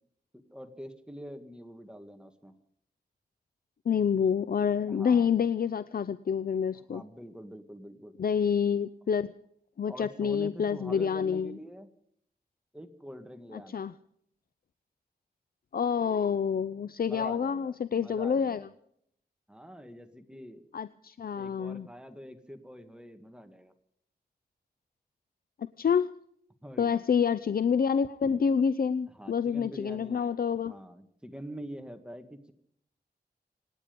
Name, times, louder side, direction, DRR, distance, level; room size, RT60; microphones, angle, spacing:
voice 1, 0.5-2.6 4.9-5.3 6.9-8.2 9.9-11.9 12.7-13.9 17.0-18.7 19.5-20.7 21.3-23.7 26.6-27.0 29.1-30.2 30.7-32.5, equal, 5° right, 7 dB, 1.8 m, -45 dB
voice 2, 3.9-7.0 8.2-9.3 9.8-11.6 13.5-13.9 15.7-18.6 20.7-21.9 25.6-26.1 26.8-30.7, left 7 dB, 65° left, 15 dB, 0.6 m, -28 dB
26.5 x 10.0 x 5.2 m, 0.69 s
wide cardioid pair, 75°, 17 cm